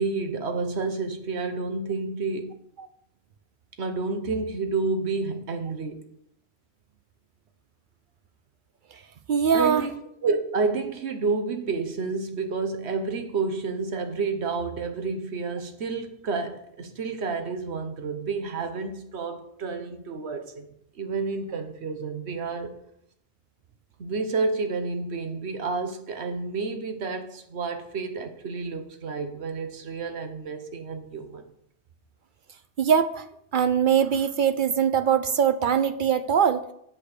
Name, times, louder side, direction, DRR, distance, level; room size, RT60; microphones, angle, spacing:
voice 1, 0.0-2.6 3.8-6.0 9.5-9.9 10.2-20.7 20.9-22.7 24.0-31.5, right 4 dB, 85° right, 1.3 m, -30 dB
voice 2, 9.3-9.8 32.8-33.2 33.5-36.6, right 7 dB, 60° right, 0.6 m, -22 dB
8.4 x 5.2 x 6.6 m
omnidirectional pair, 1.1 m